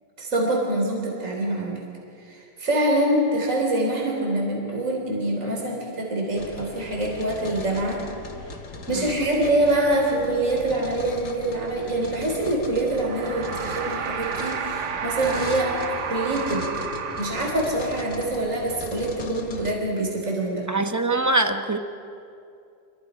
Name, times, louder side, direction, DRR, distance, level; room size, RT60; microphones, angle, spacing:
voice 1, 0.2-1.8 2.3-8.0 8.9-15.8 16.1-16.7 17.2-20.6, right 1 dB, 50° right, -1 dB, 4.0 m, -25 dB
sound 1, 6.4-19.7, left 3 dB, 50° left, 1.7 m, -38 dB
sound 2, 12.9-18.0, right 6 dB, 75° right, 1.7 m, -31 dB
voice 2, 20.7-21.8, right 2 dB, 15° right, 6 dB, 0.7 m, -23 dB
27.0 x 23.5 x 5.1 m, 2.5 s
omnidirectional pair, 1.8 m